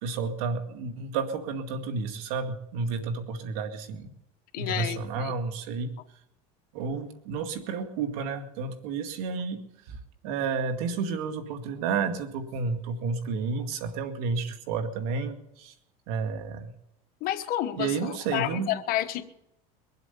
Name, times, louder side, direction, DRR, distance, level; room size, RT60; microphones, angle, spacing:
voice 1, 0.0-4.1 4.6-5.9 6.7-15.7 16.1-16.7 17.8-18.7, right 5 dB, 75° right, 7 dB, 2.1 m, -31 dB
voice 2, 4.5-5.3 17.2-19.2, left 13 dB, 50° left, 9 dB, 1.2 m, -30 dB
22.0 x 7.9 x 6.9 m, 0.83 s
supercardioid pair, 120°, 19 cm